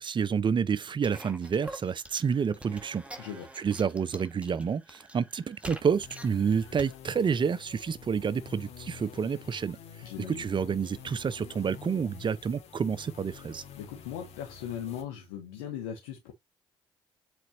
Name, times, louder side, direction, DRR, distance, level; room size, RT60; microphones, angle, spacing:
voice 1, 0.0-3.0 3.6-9.8 10.3-13.6, right 6 dB, 40° right, 0.8 m, -29 dB
sound 1, 1.0-7.0, right 1 dB, 10° right, 1.8 m, -46 dB
sound 2, 5.6-15.0, left 7 dB, 65° left, 2.2 m, -48 dB
voice 2, 10.0-10.4 13.8-16.3, left 9 dB, 85° left, 1.2 m, -38 dB
7.8 x 4.3 x 2.8 m
hypercardioid pair, 50°, 12 cm